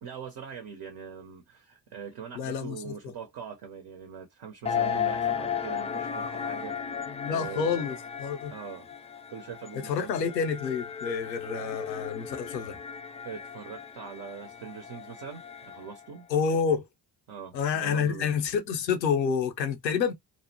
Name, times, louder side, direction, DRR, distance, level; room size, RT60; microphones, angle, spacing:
voice 1, 0.0-6.9 7.3-7.9 8.5-8.9 9.3-10.3 13.2-16.3 17.3-18.4, right 7 dB, 50° right, 0.8 m, -42 dB
voice 2, 2.3-2.9 7.1-8.5 9.7-12.8 16.3-16.9 17.5-20.1, left 6 dB, 90° left, 0.6 m, -28 dB
sound 1, 4.6-16.1, left 7 dB, 15° left, 0.4 m, -35 dB
2.6 x 2.1 x 2.7 m
figure-of-eight pair, 40°, 50 cm